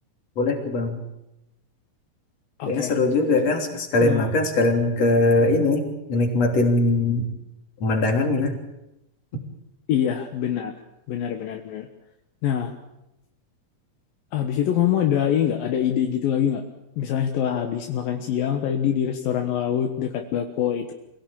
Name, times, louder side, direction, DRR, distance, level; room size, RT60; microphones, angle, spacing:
voice 1, 0.4-1.0 2.7-7.3 7.8-8.6, left 2 dB, 45° left, 3 dB, 4.2 m, -21 dB
voice 2, 2.6-2.9 4.0-4.3 9.9-10.7 11.1-11.9 12.4-12.7 14.3-16.6 17.0-20.9, left 9 dB, 75° left, 4 dB, 3.0 m, -24 dB
25.5 x 17.0 x 8.9 m, 0.89 s
omnidirectional pair, 4.2 m